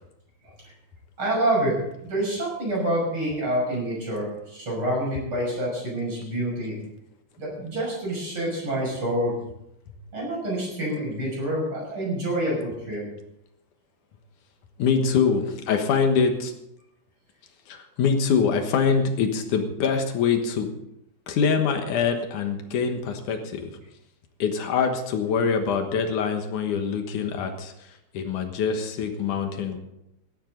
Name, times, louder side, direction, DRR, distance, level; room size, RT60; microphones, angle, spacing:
voice 1, 1.2-6.8 7.4-9.4 10.1-13.1, right 1 dB, 30° right, -3 dB, 7.1 m, -27 dB
voice 2, 14.8-16.5 17.7-20.7 21.3-23.7 24.4-27.7 28.1-29.8, left 6 dB, 60° left, 5 dB, 2.5 m, -24 dB
17.5 x 12.5 x 3.9 m, 0.82 s
omnidirectional pair, 4.6 m